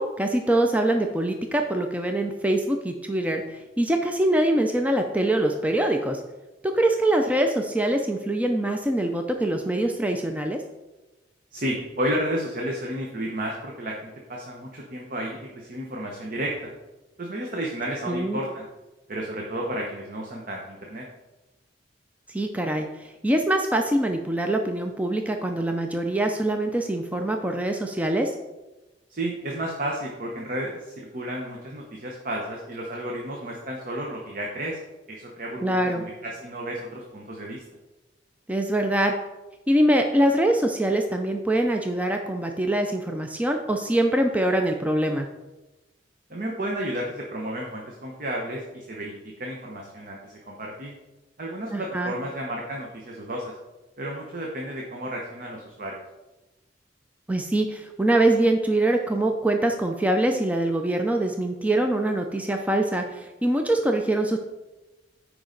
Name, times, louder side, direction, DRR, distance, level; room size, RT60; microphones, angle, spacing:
voice 1, 0.0-6.2 6.7-10.6 18.1-18.4 22.3-22.9 23.2-28.3 35.6-36.0 38.5-39.1 39.7-45.3 51.7-52.1 57.3-64.4, right 1 dB, 10° right, 4 dB, 0.4 m, -24 dB
voice 2, 11.5-16.7 17.2-18.7 19.1-21.0 29.1-34.8 35.1-37.6 46.3-50.9 51.4-53.5 54.0-56.0, right 1 dB, 50° right, -1 dB, 1.0 m, -32 dB
9.4 x 4.8 x 3.9 m, 1.1 s
head